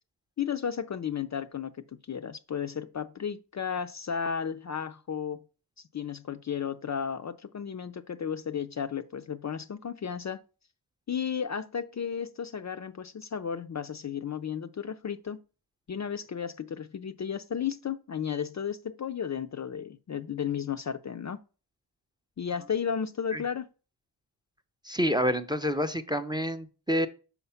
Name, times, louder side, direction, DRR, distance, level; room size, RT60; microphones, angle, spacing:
voice 1, 0.4-5.4 5.9-10.4 11.1-15.4 15.9-21.4 22.4-23.7, left 7 dB, 40° left, 0.4 m, -33 dB
voice 2, 24.8-27.1, equal, 10° right, 0.5 m, -28 dB
5.7 x 4.0 x 5.6 m
cardioid pair, 65°, 45 cm